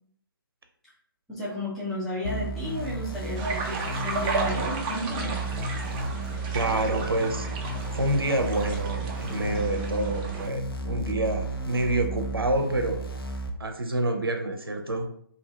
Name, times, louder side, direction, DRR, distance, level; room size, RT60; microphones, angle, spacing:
voice 1, 1.3-5.3, left 1 dB, ahead, -11 dB, 0.9 m, -33 dB
sound 1, 2.2-13.5, right 2 dB, 85° left, 0.6 m, -33 dB
sound 2, 3.3-10.5, right 3 dB, 25° right, 0.5 m, -34 dB
voice 2, 6.5-7.5 7.9-13.0 13.6-15.1, right 1 dB, 80° right, 5 dB, 0.6 m, -27 dB
2.7 x 2.7 x 3.2 m, 0.63 s
figure-of-eight pair, 130°, 12 cm